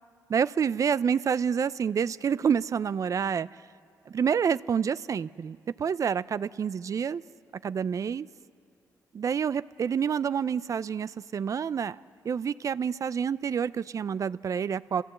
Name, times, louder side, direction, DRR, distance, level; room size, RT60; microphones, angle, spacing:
voice 1, 0.3-3.5 4.1-7.2 7.6-8.3 9.1-15.0, right 7 dB, 50° right, 17 dB, 0.5 m, -28 dB
28.5 x 15.5 x 8.1 m, 2.3 s
cardioid pair, 65°, 7 cm